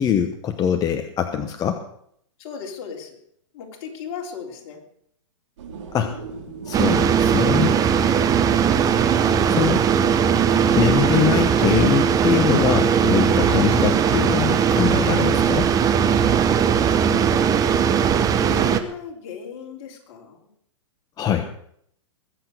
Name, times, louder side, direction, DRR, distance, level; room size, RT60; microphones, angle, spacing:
voice 1, 0.0-1.8 5.9-6.1 6.6-7.8 9.5-9.8 10.7-15.7 21.2-21.4, left 9 dB, 25° left, 6 dB, 1.0 m, -22 dB
voice 2, 2.4-3.2 3.5-4.9 8.2-8.5 18.1-20.5 21.3-21.4, left 6 dB, 50° left, 2 dB, 3.8 m, -37 dB
sound 1, 5.6-12.1, right 5 dB, 65° right, 5.0 m, -39 dB
sound 2, 6.7-18.8, right 7 dB, 20° right, 1.0 m, -19 dB
21.5 x 8.2 x 6.6 m, 0.68 s
hypercardioid pair, 130°, 17 cm